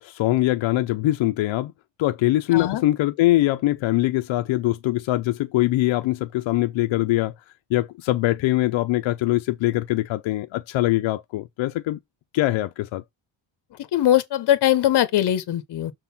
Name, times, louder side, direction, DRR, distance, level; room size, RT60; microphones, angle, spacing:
voice 1, 0.0-1.7 2.0-7.3 7.7-12.0 12.3-13.0, left 16 dB, 90° left, 0.7 m, -22 dB
voice 2, 2.5-2.8 13.9-15.9, left 12 dB, 60° left, 1.1 m, -21 dB
6.4 x 3.9 x 5.8 m
cardioid pair, 155°, 45 cm